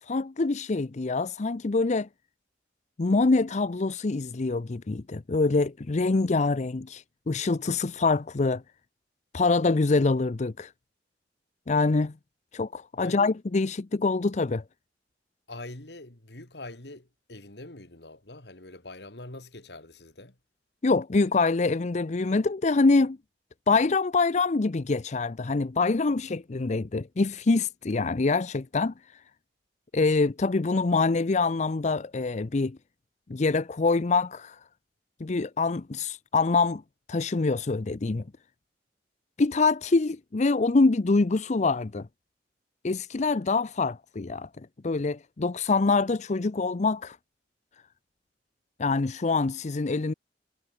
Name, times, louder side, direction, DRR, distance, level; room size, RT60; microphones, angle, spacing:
voice 1, 0.0-2.1 3.0-8.6 9.3-10.7 11.7-12.1 12.5-14.6 20.8-23.2 23.7-29.2 29.9-32.8 33.3-34.6 35.2-36.8 37.1-38.2 39.4-42.1 42.8-47.2 48.8-50.1, left 3 dB, 40° left, 0.6 m, -25 dB
voice 2, 12.9-13.3 15.5-20.4, left 2 dB, 65° left, 2.8 m, -44 dB
head